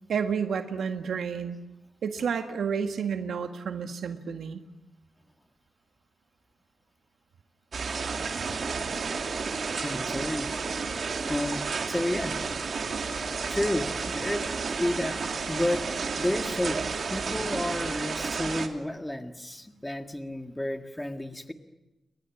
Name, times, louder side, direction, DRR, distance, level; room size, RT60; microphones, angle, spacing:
voice 1, 0.1-1.6 2.0-4.6, right 6 dB, 75° right, 7 dB, 1.8 m, -30 dB
sound 1, 7.7-18.7, right 5 dB, 50° right, 2.9 m, -31 dB
voice 2, 9.8-10.5 11.2-12.4 13.5-15.9 16.2-16.8 17.1-21.5, left 1 dB, 10° left, 6 dB, 1.7 m, -31 dB
29.5 x 25.0 x 7.2 m, 1.0 s
wide cardioid pair, 165°, 0 cm